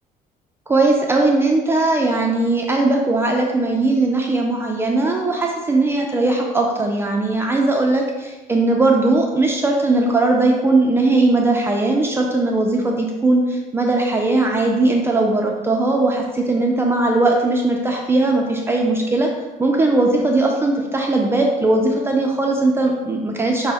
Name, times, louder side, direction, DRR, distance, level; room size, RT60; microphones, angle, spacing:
voice 1, 0.7-19.3 19.6-23.7, right 2 dB, 15° right, 0 dB, 0.3 m, -19 dB
5.4 x 2.0 x 4.0 m, 1.2 s
cardioid pair, 145°, 15 cm